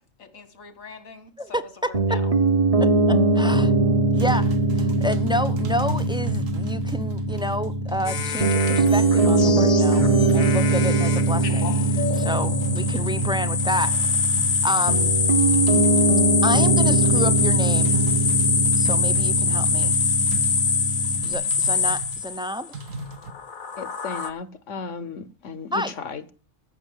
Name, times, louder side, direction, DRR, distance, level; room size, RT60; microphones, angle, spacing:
voice 1, 0.2-2.3, left 5 dB, 85° left, 2.2 m, -43 dB
voice 2, 1.4-2.2 2.8-3.7 4.1-10.1 10.3-13.9 14.6-15.1 16.4-18.0 18.8-19.9 21.2-22.7 25.7-25.9, equal, 5° right, 0.4 m, -30 dB
Piano, 1.9-21.3, right 2 dB, 30° right, 1.0 m, -22 dB
sound 1, 4.1-22.2 22.7-23.3, right 2 dB, 75° right, 1.7 m, -37 dB
sound 2, 8.1-22.6 23.2-24.3, left 5 dB, 45° left, 0.9 m, -24 dB
voice 3, 23.8-26.3, left 5 dB, 70° left, 1.2 m, -35 dB
15.0 x 6.2 x 7.4 m
omnidirectional pair, 1.4 m